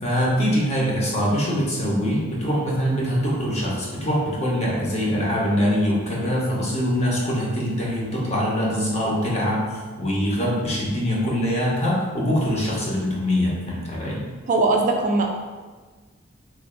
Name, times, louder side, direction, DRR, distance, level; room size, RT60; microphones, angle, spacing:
voice 1, 0.0-14.2, equal, 35° left, -5 dB, 0.9 m, -23 dB
voice 2, 14.5-15.3, right 2 dB, 40° right, 2 dB, 0.3 m, -20 dB
3.2 x 2.5 x 3.7 m, 1.4 s
head